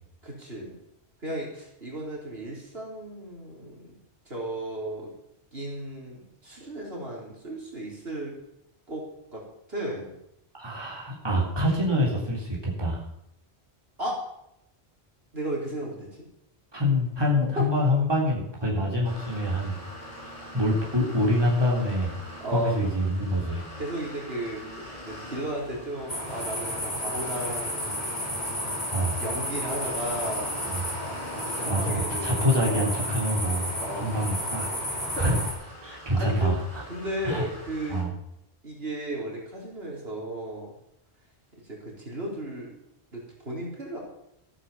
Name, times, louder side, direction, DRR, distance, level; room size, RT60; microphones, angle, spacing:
voice 1, 0.2-0.8 1.2-3.9 4.3-5.1 5.5-8.4 8.9-9.0 9.3-10.1 14.0-14.2 15.3-16.3 17.4-17.7 22.4-22.7 23.8-28.1 29.2-30.6 31.5-32.5 33.8-34.3 35.2-35.4 35.8-36.5 36.9-38.0 38.6-40.7 41.5-42.7 43.1-44.0, right 1 dB, 65° right, -2 dB, 4.5 m, -35 dB
voice 2, 10.6-13.1 16.7-19.8 20.1-22.2 22.5-23.7 28.9-29.2 30.7-30.8 31.7-33.7 33.9-34.7 35.1-35.4 35.8-36.8 37.2-37.4 37.9-38.1, left 1 dB, 20° right, -3 dB, 3.5 m, -26 dB
sound 1, 19.0-38.0, equal, 35° left, 5.0 m, -43 dB
sound 2, 26.1-35.5, equal, 70° left, 6.5 m, -32 dB
14.0 x 9.9 x 7.1 m, 0.78 s
omnidirectional pair, 1.1 m